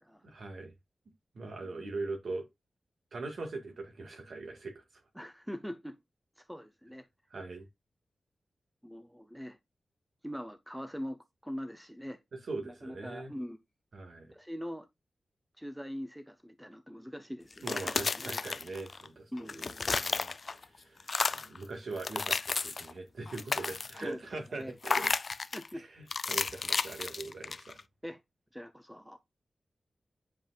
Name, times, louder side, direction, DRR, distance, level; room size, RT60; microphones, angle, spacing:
voice 1, 0.2-0.7 1.3-2.4 3.1-4.8 7.3-7.7 12.4-13.3 13.9-14.3 17.6-25.1 25.7-27.8, right 3 dB, 60° right, 1.9 m, -41 dB
voice 2, 5.2-6.0 6.4-7.0 8.8-9.6 10.2-12.2 12.7-13.6 14.3-14.9 15.6-18.4 19.3-19.9 24.0-24.2 24.5-24.8 25.5-25.8 28.0-28.2 28.5-29.2, equal, ahead, 0.6 m, -42 dB
sound 1, 17.5-19.1 19.4-20.6 21.0-21.6 22.0-22.9 23.3-24.1 24.8-25.7 26.1-27.8, left 4 dB, 40° left, 0.3 m, -33 dB
8.9 x 5.3 x 2.4 m
wide cardioid pair, 175°, 0 cm